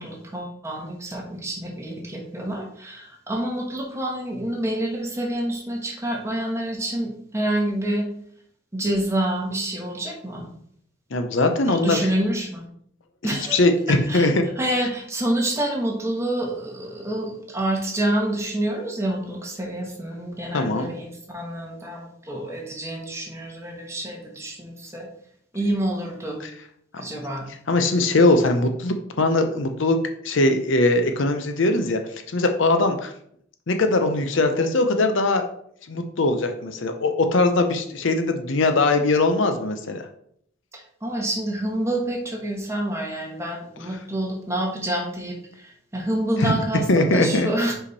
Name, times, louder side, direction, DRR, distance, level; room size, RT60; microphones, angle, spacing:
voice 1, 0.0-8.1 8.7-10.5 11.7-12.7 13.2-13.6 13.9-14.3 14.6-25.1 25.5-26.4 27.0-27.5 40.7-47.7, right 1 dB, 15° right, 0 dB, 1.3 m, -27 dB
voice 2, 11.1-12.0 13.2-14.4 20.5-20.9 27.7-30.0 30.2-32.0 32.3-33.1 33.7-35.4 35.9-40.0 46.4-46.5 46.9-47.5, left 2 dB, 65° left, 7 dB, 0.7 m, -21 dB
5.1 x 5.0 x 4.1 m, 0.67 s
head